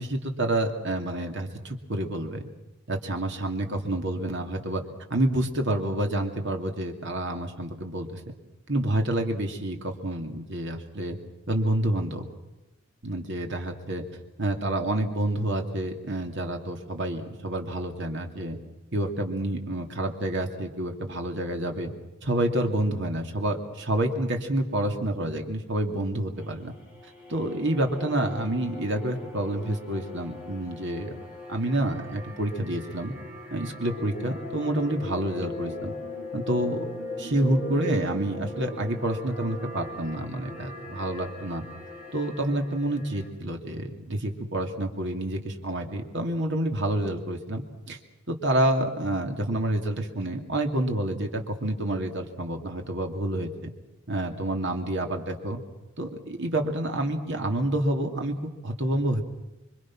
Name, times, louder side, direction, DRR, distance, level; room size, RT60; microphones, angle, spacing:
voice 1, 0.0-2.4 2.9-4.8 5.1-8.2 8.7-11.2 11.5-12.3 13.0-14.0 14.4-18.6 18.9-21.9 22.2-26.7 27.3-31.1 31.5-33.1 33.5-35.9 36.3-36.8 37.2-41.6 42.1-48.0 48.3-53.7 54.1-55.6 56.0-59.2, right 1 dB, 65° right, 4 dB, 2.6 m, -28 dB
sound 1, 26.4-43.3, left 2 dB, 10° right, 5.2 m, -39 dB
26.5 x 23.5 x 6.1 m, 1.0 s
head